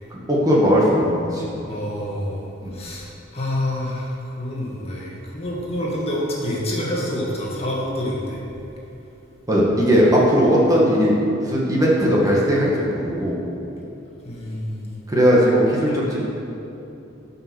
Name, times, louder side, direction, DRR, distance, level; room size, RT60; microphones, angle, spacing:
voice 1, 0.1-1.4 2.6-2.7 9.5-11.1 11.4-13.4 15.1-16.3, equal, 20° right, -5 dB, 1.8 m, -18 dB
voice 2, 1.7-4.1 4.4-8.4 14.2-14.9 15.9-16.0, left 1 dB, 30° left, -4 dB, 1.9 m, -27 dB
12.5 x 5.7 x 6.3 m, 2.9 s
head